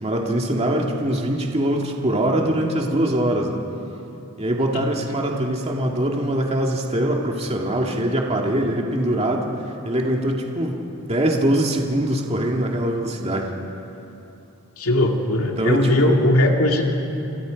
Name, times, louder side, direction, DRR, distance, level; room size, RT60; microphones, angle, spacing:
voice 1, 0.0-3.6 4.4-9.5 9.8-10.8 11.1-13.5 15.6-16.2, right 1 dB, 30° right, 0 dB, 2.1 m, -22 dB
voice 2, 14.8-17.1, left 1 dB, 80° left, 1 dB, 2.4 m, -19 dB
28.0 x 27.5 x 5.2 m, 2.9 s
head